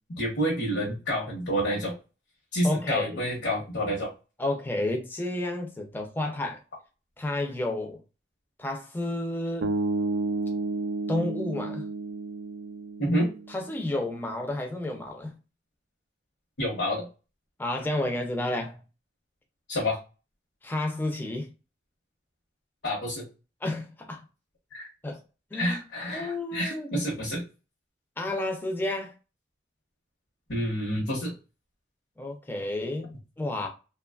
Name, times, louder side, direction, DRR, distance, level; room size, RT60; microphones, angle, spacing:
voice 1, 0.2-1.9 2.5-4.1 13.0-13.3 16.6-17.1 19.7-20.0 22.8-23.3 24.7-24.9 25.5-27.4 30.5-31.3, equal, 80° left, 0.9 m, -28 dB
voice 2, 2.6-3.2 4.4-6.6 7.2-8.0 8.6-9.7 11.1-11.9 13.5-15.4 17.6-18.8 20.6-21.5 23.6-24.2 25.0-25.2 25.5-25.8 26.1-26.9 28.2-29.1 32.2-33.7, left 1 dB, 10° left, 0.4 m, -31 dB
sound 1, 9.6-13.8, right 3 dB, 80° right, 0.4 m, -31 dB
2.8 x 2.2 x 2.3 m
head